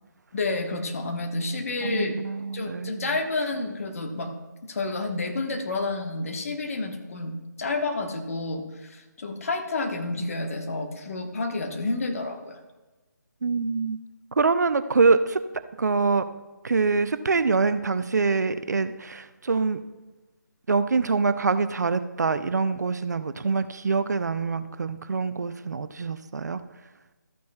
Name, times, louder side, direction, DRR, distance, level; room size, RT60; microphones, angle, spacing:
voice 1, 0.3-2.2 2.5-4.3 4.6-12.6, left 3 dB, 50° left, 4 dB, 1.3 m, -30 dB
voice 2, 1.8-3.1 13.4-14.0 14.4-15.4 15.8-16.2 16.6-19.8 20.7-26.6, right 4 dB, 60° right, 12 dB, 0.6 m, -25 dB
13.5 x 9.2 x 2.3 m, 1.2 s
figure-of-eight pair, 150°, 10 cm